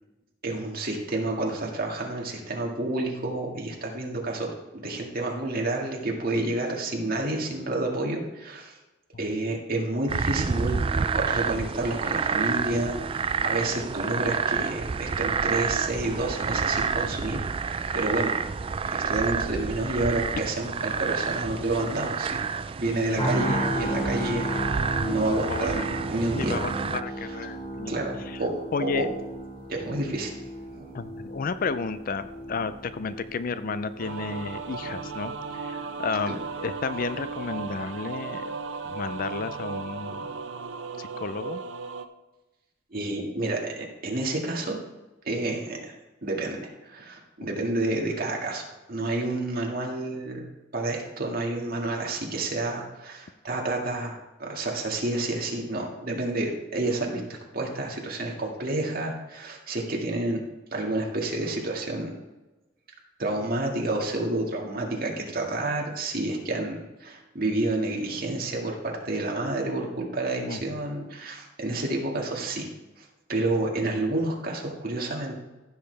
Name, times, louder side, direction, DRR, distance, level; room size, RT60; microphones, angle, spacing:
voice 1, 0.4-8.8 9.2-18.4 18.9-22.4 22.8-24.5 25.0-25.8 26.1-26.6 27.9-28.5 28.8-29.1 29.7-30.3 30.7-30.8 36.3-36.4 42.9-44.8 45.2-45.9 46.2-50.4 50.7-57.2 57.5-60.4 60.7-62.1 63.2-72.7 73.0-75.4, right 2 dB, 50° right, -1 dB, 2.0 m, -29 dB
sound 1, 10.1-27.0, right 5 dB, 30° right, 0.3 m, -29 dB
sound 2, 23.2-37.2 37.5-37.7, right 1 dB, 30° left, 3.6 m, -34 dB
voice 2, 25.5-25.8 26.4-28.0 28.3-28.4 28.7-29.1 30.9-38.5 38.8-40.3 41.0-41.6 70.4-70.8, left 4 dB, 45° left, 13 dB, 0.4 m, -32 dB
sound 3, 34.0-42.1, right 4 dB, 65° right, 0.6 m, -35 dB
15.0 x 6.8 x 3.4 m, 1.1 s
head